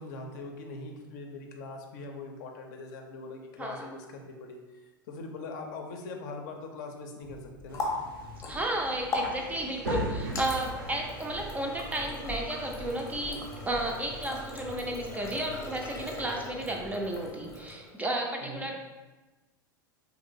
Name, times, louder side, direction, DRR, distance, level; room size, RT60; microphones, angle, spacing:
voice 1, 0.0-7.9 18.4-18.7, left 3 dB, 55° left, 3 dB, 0.5 m, -42 dB
Water tap faucet, 7.2-18.0, left 2 dB, 25° left, 0.8 m, -39 dB
sound 1, 7.7-15.7, right 1 dB, 80° right, 0.5 m, -41 dB
voice 2, 8.5-18.7, right 1 dB, 15° right, 1 dB, 0.4 m, -33 dB
2.9 x 2.8 x 2.6 m, 1.2 s
hypercardioid pair, 90°, 12 cm